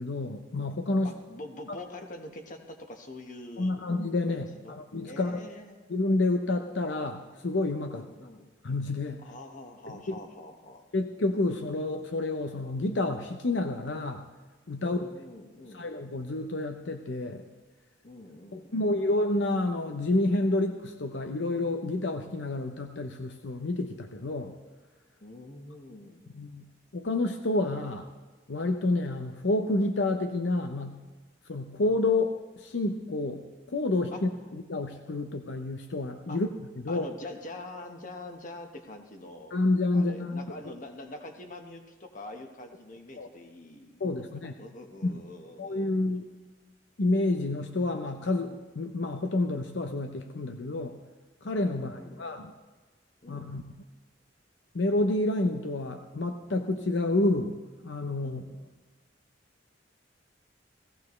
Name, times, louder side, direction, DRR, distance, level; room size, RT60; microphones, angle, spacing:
voice 1, 0.0-1.1 3.6-5.4 5.9-8.0 8.6-9.2 9.9-10.2 10.9-14.2 14.7-15.0 15.7-17.4 18.5-24.5 26.3-26.7 26.9-28.1 28.5-31.0 31.5-33.4 33.7-36.5 36.8-37.1 39.5-40.4 43.2-43.3 44.0-44.5 45.0-45.2 45.6-46.3 47.0-51.0 51.4-52.5 53.3-53.6 54.7-57.6 57.8-58.4, left 2 dB, 75° left, 5 dB, 0.7 m, -29 dB
voice 2, 1.0-3.8 4.3-4.8 5.0-5.9 7.9-8.5 9.2-10.8 14.8-15.9 18.0-19.1 25.2-26.4 34.1-34.5 36.3-36.4 36.9-39.6 39.9-46.0 51.7-52.3 53.2-53.5 58.2-58.6, left 2 dB, 45° left, 4 dB, 1.3 m, -45 dB
17.0 x 15.5 x 3.2 m, 1.3 s
head